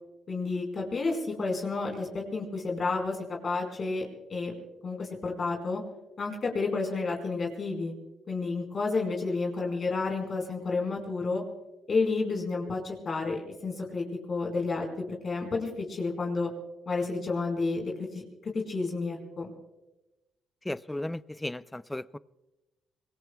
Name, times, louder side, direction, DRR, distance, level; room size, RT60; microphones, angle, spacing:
voice 1, 0.3-4.5 4.8-5.8 6.2-7.9 8.3-11.4 11.9-14.9 15.2-16.5 16.9-19.5, left 3 dB, 45° left, 1 dB, 4.8 m, -31 dB
voice 2, 20.7-22.2, left 1 dB, 10° left, 17 dB, 0.4 m, -35 dB
26.0 x 21.0 x 2.3 m, 1.0 s
cardioid pair, 90°, 0 cm